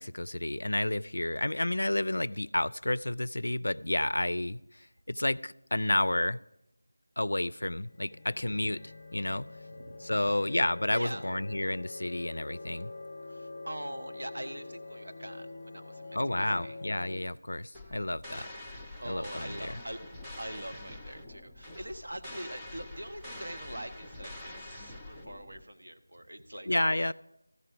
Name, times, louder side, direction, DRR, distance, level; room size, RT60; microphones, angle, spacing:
voice 1, 0.0-6.4 7.2-9.5 10.0-12.9 16.1-18.5 19.1-19.8 26.7-27.1, left 1 dB, 80° left, 20 dB, 0.3 m, -31 dB
sound 1, 7.6-17.2, left 3 dB, 25° left, 0.8 m, -45 dB
voice 2, 9.6-10.4 10.9-11.3 13.2-16.8 19.0-20.0 20.4-26.8, right 1 dB, 70° right, 6 dB, 1.2 m, -43 dB
sound 2, 17.7-25.6, left 1 dB, ahead, 0.5 m, -46 dB
14.0 x 4.9 x 7.5 m, 0.86 s
figure-of-eight pair, 175°, 0 cm